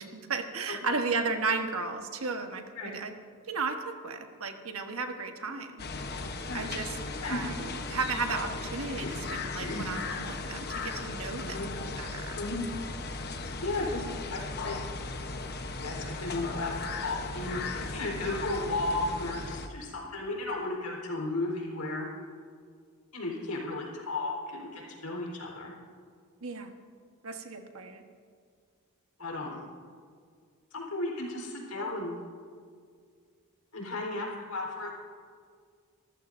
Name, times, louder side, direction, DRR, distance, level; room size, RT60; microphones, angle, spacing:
voice 1, 0.0-3.1 3.5-5.8 6.5-6.9 7.3-12.4 26.4-26.7 27.2-28.0, right 4 dB, 65° right, 5 dB, 1.3 m, -34 dB
sound 1, 5.8-19.7, left 3 dB, 45° left, 1.0 m, -37 dB
voice 2, 7.0-7.4 9.0-9.9 11.4-11.7 12.4-12.6 13.6-14.8 15.8-22.1 23.1-25.7 29.2-29.6 30.7-32.2 33.7-35.0, left 2 dB, 90° left, -2 dB, 4.1 m, -34 dB
25.5 x 14.5 x 2.7 m, 2.1 s
head